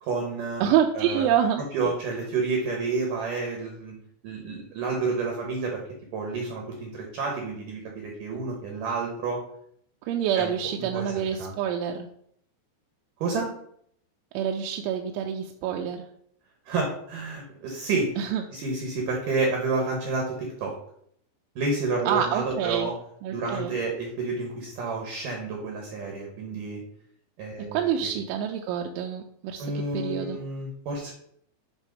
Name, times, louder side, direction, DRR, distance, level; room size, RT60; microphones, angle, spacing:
voice 1, 0.0-0.6 0.9-1.3 1.6-3.9 4.2-5.8 6.1-9.4 10.4-10.5 10.8-11.5 13.2-13.5 16.7-18.1 18.5-20.7 21.6-22.9 23.3-26.8 27.4-28.1 29.6-31.1, right 3 dB, 70° right, 1 dB, 2.1 m, -30 dB
voice 2, 0.6-1.6 10.0-12.1 14.3-16.1 18.2-18.4 22.1-22.9 23.2-23.8 27.7-30.4, right 9 dB, 85° right, 2 dB, 3.0 m, -27 dB
8.2 x 3.4 x 5.2 m, 0.67 s
omnidirectional pair, 5.4 m